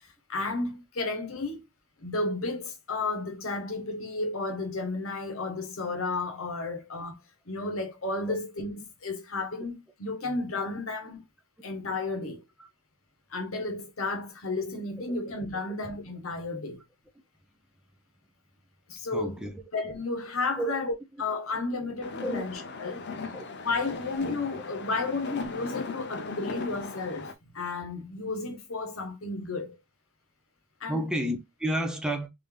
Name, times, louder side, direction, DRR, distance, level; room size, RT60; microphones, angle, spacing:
voice 1, 0.3-1.6 2.0-11.2 11.6-12.4 13.3-16.8 18.9-19.4 19.7-20.9 21.2-23.1 23.6-29.8 30.8-31.0, left 3 dB, 80° left, 1.1 m, -33 dB
voice 2, 19.1-19.5 20.6-20.9 22.2-22.4 23.1-23.5 30.9-32.3, right 1 dB, 5° right, 0.6 m, -31 dB
sound 1, 22.0-27.3, left 4 dB, 55° left, 0.6 m, -38 dB
3.6 x 2.7 x 3.3 m
head